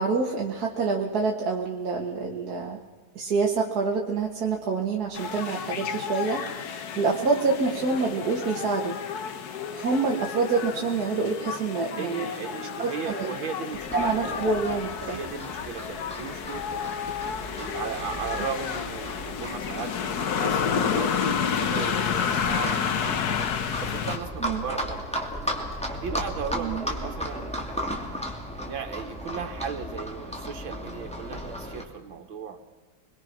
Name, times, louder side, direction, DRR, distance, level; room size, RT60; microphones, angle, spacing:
voice 1, 0.0-2.8 3.2-9.0 9.7-12.3 12.8-13.4 13.9-15.2 24.4-24.6 26.6-26.8, right 4 dB, 50° right, -1 dB, 2.1 m, -27 dB
sound 1, 5.1-24.2, left 7 dB, 55° left, 1.5 m, -30 dB
voice 2, 12.0-14.6 15.1-17.0 17.6-23.5 23.8-25.2 25.9-27.5 28.6-32.6, right 6 dB, 85° right, 4 dB, 2.4 m, -36 dB
Livestock farm animals working animals, 13.7-31.8, equal, 5° left, 2.5 m, -36 dB
25.5 x 22.5 x 6.1 m, 1.4 s
omnidirectional pair, 2.1 m